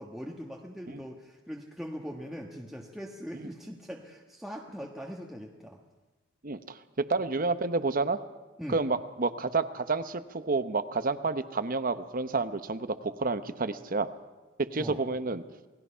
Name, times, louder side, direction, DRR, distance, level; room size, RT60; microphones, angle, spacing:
voice 1, 0.0-5.8 8.6-8.8 14.7-15.0, equal, ahead, -1 dB, 1.4 m, -41 dB
voice 2, 6.4-8.2 8.7-14.1 14.6-15.4, right 3 dB, 45° right, 11 dB, 0.9 m, -29 dB
28.5 x 19.0 x 5.7 m, 1.2 s
head